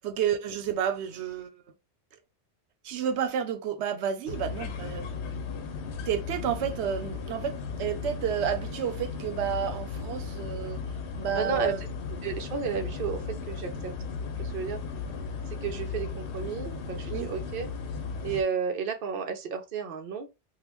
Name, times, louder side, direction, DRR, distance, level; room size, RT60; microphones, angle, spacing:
voice 1, 0.0-1.5 2.8-5.1 6.0-10.8 11.2-11.8 17.1-17.3, right 8 dB, 90° right, 0.9 m, -30 dB
sound 1, 4.3-18.4, left 5 dB, 80° left, 0.9 m, -36 dB
voice 2, 11.3-11.9 12.2-13.9 14.4-14.8 15.6-17.7 18.2-20.3, right 6 dB, 60° right, 0.8 m, -32 dB
3.4 x 2.3 x 3.0 m
omnidirectional pair, 1.1 m